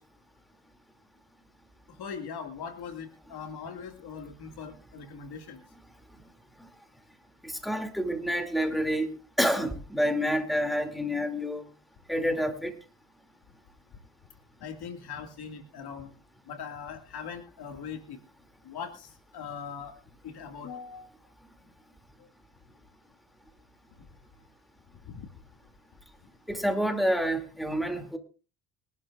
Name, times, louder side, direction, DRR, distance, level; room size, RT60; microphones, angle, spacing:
voice 1, 2.0-5.6 14.6-16.1 16.5-18.2 18.6-20.0 20.2-21.1 25.1-25.3, left 6 dB, 50° left, 6 dB, 2.1 m, -40 dB
voice 2, 7.6-9.1 9.4-11.6 12.1-12.7 26.5-28.2, equal, ahead, 5 dB, 2.6 m, -28 dB
23.5 x 12.0 x 2.5 m, 0.35 s
hypercardioid pair, 80°, 50 cm